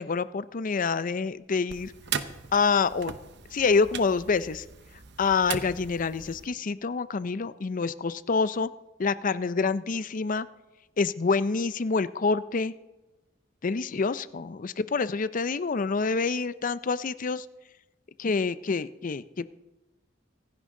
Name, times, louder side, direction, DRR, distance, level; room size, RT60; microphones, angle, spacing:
voice 1, 0.0-1.9 2.5-3.1 3.5-4.6 5.2-8.7 9.0-10.5 11.0-12.7 13.6-17.4 18.2-19.5, left 4 dB, 45° left, 15 dB, 0.5 m, -27 dB
sound 1, 1.7-6.5, right 7 dB, 65° right, 0.9 m, -38 dB
25.5 x 10.5 x 3.8 m, 1.1 s
head